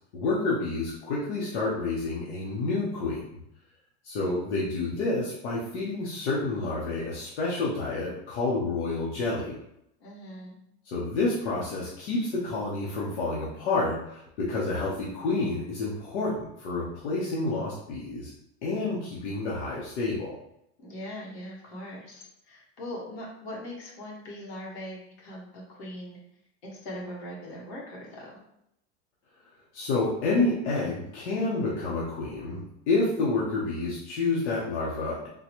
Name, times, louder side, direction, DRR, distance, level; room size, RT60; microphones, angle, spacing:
voice 1, 0.1-3.4 4.0-9.6 10.8-18.3 18.6-20.3 29.7-35.3, left 3 dB, 85° left, -5 dB, 0.9 m, -29 dB
voice 2, 10.0-10.6 20.8-26.2 26.6-28.4, left 1 dB, 65° left, -3 dB, 1.5 m, -40 dB
3.8 x 2.2 x 2.9 m, 0.78 s
supercardioid pair, 155°, 33 cm